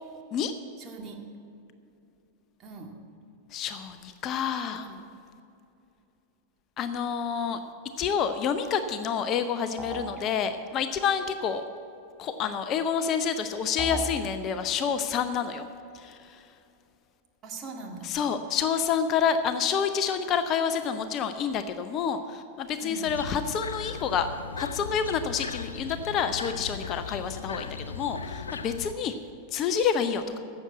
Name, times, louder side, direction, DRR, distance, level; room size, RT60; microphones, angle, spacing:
voice 1, 0.8-1.2 2.6-2.9 4.7-5.0 17.4-18.1 22.8-23.1 30.2-30.4, right 3 dB, 30° right, 1 dB, 1.9 m, -41 dB
voice 2, 3.5-4.9 6.8-7.6 8.0-11.6 12.2-15.7 15.9-16.5 18.0-24.3 24.6-29.1 29.5-30.4, left 7 dB, 35° left, 10 dB, 0.6 m, -28 dB
sound 1, 9.8-10.2 13.8-14.2, right 1 dB, 10° left, 1.4 m, -34 dB
sound 2, 23.1-28.9, left 5 dB, 75° left, 0.5 m, -38 dB
12.5 x 7.8 x 8.2 m, 2.6 s
figure-of-eight pair, 90°, 0 cm